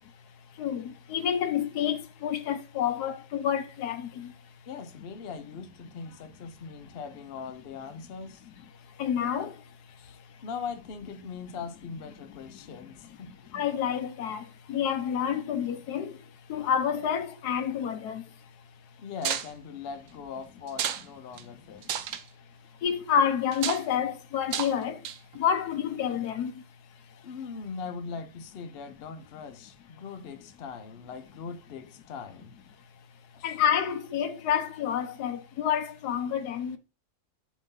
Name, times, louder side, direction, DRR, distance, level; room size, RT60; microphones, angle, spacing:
voice 1, 0.6-4.3 9.0-9.5 13.5-14.4 14.7-16.1 16.5-18.2 22.8-25.0 25.4-26.5 33.4-36.8, left 8 dB, 65° left, 1.2 m, -28 dB
voice 2, 4.7-8.5 10.0-13.3 19.0-22.2 27.2-32.5 33.3-33.6, left 5 dB, 85° left, 0.5 m, -41 dB
sound 1, 19.2-19.5 20.7-21.0 21.4-21.5 21.8-22.2 23.5-23.8 24.5-24.7 25.0-25.4, right 9 dB, 80° right, 0.7 m, -31 dB
7.4 x 2.8 x 5.2 m
omnidirectional pair, 2.0 m